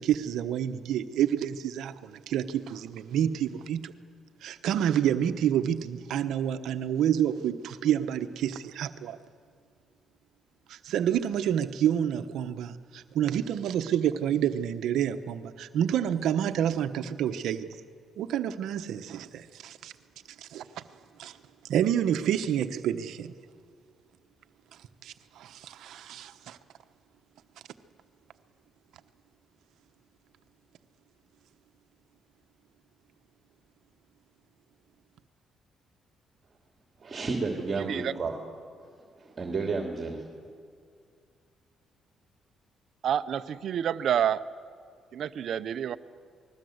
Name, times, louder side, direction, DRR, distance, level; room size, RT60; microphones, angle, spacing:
voice 1, 0.0-4.0 4.4-9.2 10.7-17.7 18.2-19.9 20.4-20.8 21.2-21.4 21.7-23.3 25.0-26.6, right 10 dB, 80° right, 1.1 m, -28 dB
voice 2, 37.0-38.4 39.2-40.2, right 4 dB, 40° right, 2.9 m, -31 dB
voice 3, 43.0-44.4 45.1-46.0, right 9 dB, 65° right, 0.8 m, -28 dB
29.0 x 20.5 x 8.0 m
cardioid pair, 90°, 0 cm